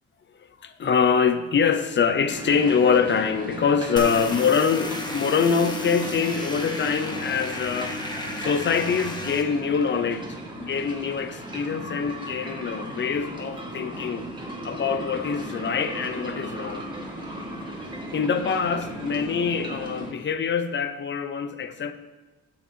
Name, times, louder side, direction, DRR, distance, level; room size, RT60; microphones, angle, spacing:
voice 1, 0.4-8.0 8.4-14.3 14.6-16.8 17.9-21.9, left 6 dB, 40° left, 10 dB, 0.6 m, -24 dB
sound 1, 2.3-20.1, right 1 dB, 15° right, 1.5 m, -36 dB
sound 2, 4.0-9.4, left 2 dB, 15° left, 1.1 m, -33 dB
9.3 x 7.3 x 2.8 m, 1.2 s
cardioid pair, 90°, 30 cm